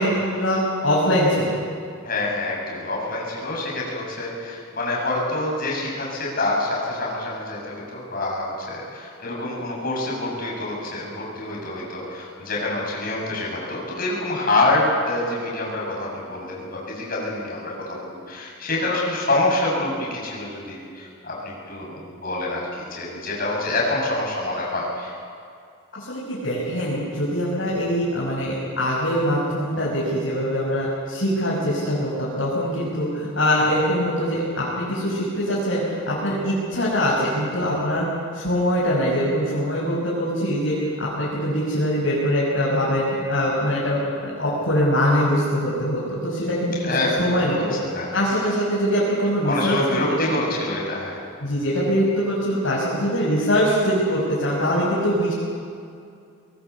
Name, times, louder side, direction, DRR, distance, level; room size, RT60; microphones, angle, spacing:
voice 1, 0.0-1.6 25.9-38.1 38.3-46.9 47.2-47.6 48.1-50.3 51.4-55.3, equal, 65° left, -7 dB, 6.1 m, -23 dB
voice 2, 2.0-25.1 46.8-48.1 49.4-51.2, left 2 dB, 45° left, -3 dB, 7.5 m, -26 dB
22.0 x 19.0 x 8.4 m, 2.4 s
head